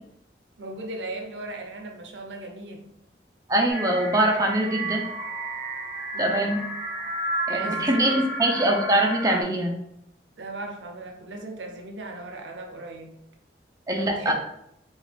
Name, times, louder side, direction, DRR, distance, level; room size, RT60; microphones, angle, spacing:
voice 1, 0.6-2.9 6.1-6.5 7.5-8.3 10.4-13.2 14.0-14.3, right 2 dB, 90° right, 0.7 m, -37 dB
voice 2, 3.5-5.0 6.2-6.6 7.5-9.7 13.9-14.3, right 1 dB, 20° right, 0.5 m, -23 dB
sound 1, 3.7-9.4, right 2 dB, ahead, 1.3 m, -32 dB
4.9 x 2.5 x 3.4 m
head